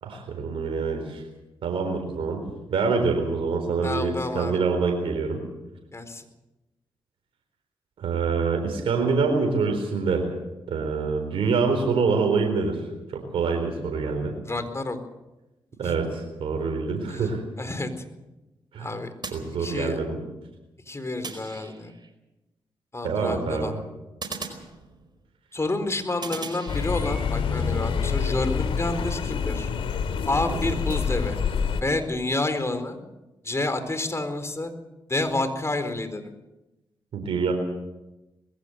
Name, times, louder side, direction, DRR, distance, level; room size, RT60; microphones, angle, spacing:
voice 1, 0.0-1.2 1.6-2.4 2.7-5.4 8.0-10.3 10.7-12.8 13.1-14.3 15.8-17.4 18.7-18.9 19.3-20.2 23.0-23.8 37.1-37.5, right 4 dB, 75° right, 4 dB, 4.1 m, -25 dB
voice 2, 3.8-4.6 5.9-6.2 14.4-15.0 15.8-16.0 17.1-17.2 17.6-17.9 18.8-19.1 19.6-20.0 20.9-21.9 22.9-23.7 25.5-29.7 30.3-31.4 31.8-33.0 33.4-34.7 35.1-36.3, left 2 dB, 30° left, 9 dB, 4.3 m, -29 dB
sound 1, 19.2-20.2 21.2-22.1 24.2-25.3 26.2-27.3, right 4 dB, 50° right, 4.8 m, -39 dB
sound 2, 26.7-31.8, left 6 dB, 75° left, 2.4 m, -27 dB
21.0 x 16.5 x 8.2 m, 1.0 s
supercardioid pair, 45°, 9 cm